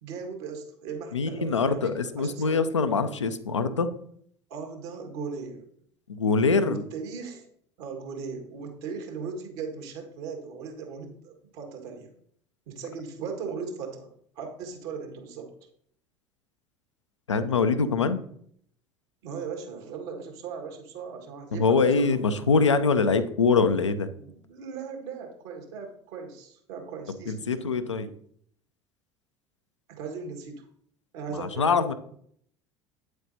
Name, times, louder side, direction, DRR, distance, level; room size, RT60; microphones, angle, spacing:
voice 1, 0.0-2.7 4.5-5.6 6.6-7.5 7.8-12.1 12.7-14.1 14.3-15.5 19.2-22.2 24.1-27.5 30.0-30.6 31.1-31.8, right 5 dB, 60° right, 3 dB, 1.8 m, -38 dB
voice 2, 1.1-3.9 6.1-6.8 17.3-18.2 21.6-24.1 27.3-28.1 31.3-31.9, left 4 dB, 85° left, 9 dB, 0.6 m, -24 dB
8.9 x 7.9 x 2.8 m, 0.66 s
figure-of-eight pair, 65°, 15 cm